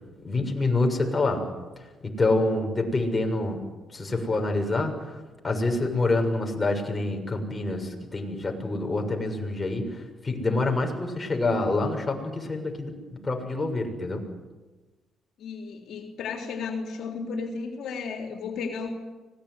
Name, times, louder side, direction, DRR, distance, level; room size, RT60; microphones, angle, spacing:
voice 1, 0.2-1.4 2.0-3.6 3.9-5.1 5.4-9.9 10.2-14.2, left 2 dB, 25° left, 3 dB, 6.8 m, -26 dB
voice 2, 15.4-18.9, left 5 dB, 75° left, 3 dB, 3.6 m, -34 dB
25.0 x 20.0 x 9.8 m, 1.2 s
cardioid pair, 90°, 0 cm